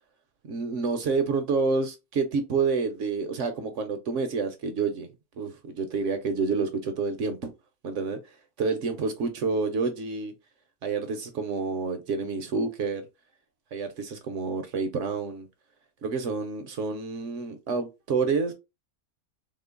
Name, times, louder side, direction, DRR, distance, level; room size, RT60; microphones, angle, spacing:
voice 1, 0.5-5.1 5.4-7.5 7.8-8.2 8.6-10.3 10.8-13.0 13.7-15.5 16.0-18.5, right 4 dB, 65° right, 0.9 m, -28 dB
3.7 x 2.0 x 3.6 m
omnidirectional pair, 1.5 m